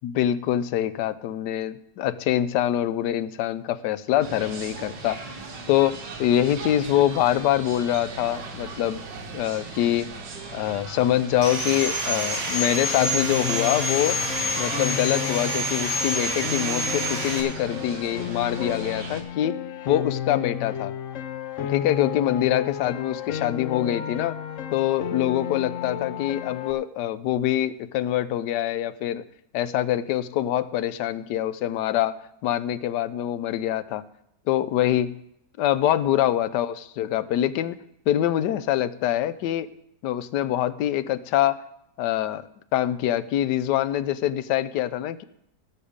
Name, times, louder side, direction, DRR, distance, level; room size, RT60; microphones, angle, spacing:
voice 1, 0.0-5.2 5.7-9.0 9.3-10.1 10.5-14.2 14.6-19.6 19.9-20.9 21.6-24.4 24.7-29.2 29.5-32.1 32.4-34.0 34.5-35.2 35.6-37.8 38.1-39.7 40.0-41.6 42.0-42.4 42.7-45.2, left 12 dB, 80° left, 15 dB, 1.2 m, -24 dB
sound 1, 4.2-19.2, right 3 dB, 85° right, 2.1 m, -38 dB
Sawing, 11.4-17.4, equal, 35° right, 2.3 m, -27 dB
Piano, 13.0-26.7, left 10 dB, 55° left, 0.9 m, -33 dB
17.5 x 6.6 x 5.1 m, 0.78 s
omnidirectional pair, 1.9 m